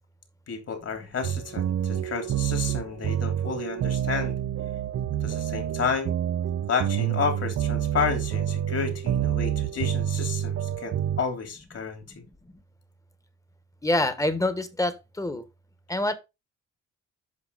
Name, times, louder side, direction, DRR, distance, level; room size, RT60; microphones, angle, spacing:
voice 1, 0.5-4.4 5.2-6.1 6.7-12.0, left 6 dB, 55° left, 3.2 m, -31 dB
sound 1, 1.2-11.3, right 10 dB, 55° right, 0.7 m, -28 dB
voice 2, 13.8-15.4 15.9-16.1, left 1 dB, 10° left, 1.4 m, -26 dB
8.7 x 5.9 x 4.1 m
cardioid pair, 90°, 30 cm